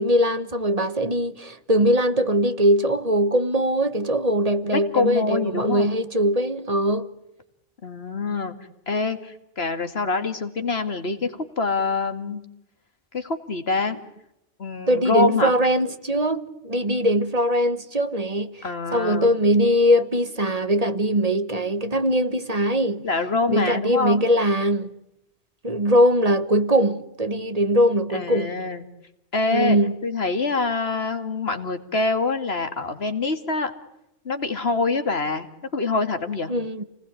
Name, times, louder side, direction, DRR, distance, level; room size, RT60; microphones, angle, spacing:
voice 1, 0.0-7.1 14.9-18.6 18.9-23.1 23.5-24.9 25.6-28.5 29.5-30.0 36.5-36.8, equal, 40° right, 1.5 m, -21 dB
voice 2, 4.7-5.9 7.8-8.5 8.9-12.4 13.1-14.0 14.6-15.5 18.6-19.3 23.0-24.3 28.1-28.8 29.3-33.7 34.2-36.5, left 3 dB, 80° left, 2.5 m, -25 dB
29.5 x 20.0 x 9.9 m
omnidirectional pair, 1.0 m